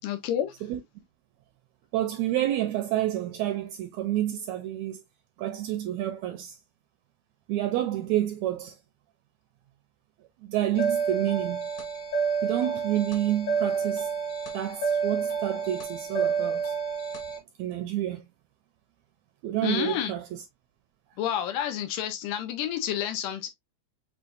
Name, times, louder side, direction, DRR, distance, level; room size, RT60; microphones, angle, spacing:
voice 1, 0.0-0.5 19.6-20.1 21.2-23.5, left 10 dB, 90° left, 2.3 m, -29 dB
voice 2, 1.9-5.0 5.4-6.6 7.5-8.7 10.4-11.6 12.4-14.1 14.5-16.8 17.6-18.2 19.4-20.4, right 13 dB, 80° right, 1.7 m, -29 dB
sound 1, 10.7-17.4, right 5 dB, 60° left, 2.5 m, -29 dB
6.7 x 2.6 x 2.6 m
omnidirectional pair, 3.7 m